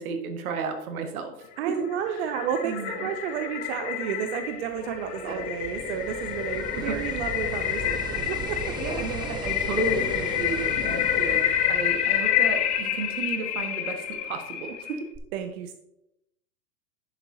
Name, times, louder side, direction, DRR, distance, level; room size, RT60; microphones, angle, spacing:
voice 1, 0.0-1.5 1.8-1.9 2.6-3.1 5.2-5.5 6.7-7.2 8.8-15.1, right 4 dB, 65° right, 6 dB, 1.7 m, -33 dB
sound 1, 1.6-15.0, left 10 dB, 15° left, 0.4 m, -28 dB
voice 2, 1.6-8.8 15.3-15.7, right 8 dB, 45° right, 7 dB, 0.7 m, -31 dB
sound 2, 4.5-13.0 15.1-15.2, right 4 dB, 10° right, 0.8 m, -39 dB
10.0 x 7.2 x 2.8 m, 0.83 s
hypercardioid pair, 120°, 46 cm